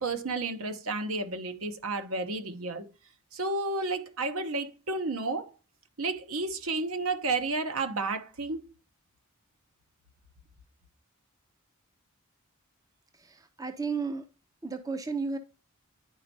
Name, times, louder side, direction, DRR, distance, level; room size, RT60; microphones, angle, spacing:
voice 1, 0.0-2.9 3.3-5.5 6.0-8.7, right 3 dB, 70° right, 0.9 m, -31 dB
voice 2, 13.1-14.3 14.6-15.4, right 4 dB, 15° right, 0.5 m, -33 dB
10.5 x 4.4 x 2.7 m
head